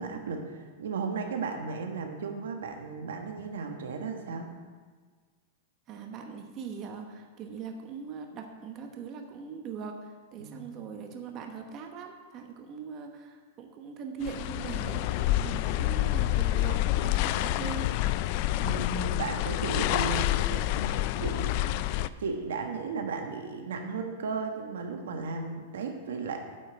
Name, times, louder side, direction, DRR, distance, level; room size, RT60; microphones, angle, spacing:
voice 1, 0.0-4.5 10.4-10.7 18.6-21.6 22.2-26.4, right 4 dB, 90° right, 4 dB, 1.5 m, -35 dB
voice 2, 5.9-17.9, right 5 dB, 30° right, 3 dB, 1.0 m, -41 dB
sound 1, 14.2-22.1, left 14 dB, 45° left, 0.3 m, -28 dB
9.0 x 5.6 x 7.9 m, 1.5 s
supercardioid pair, 150°, 0 cm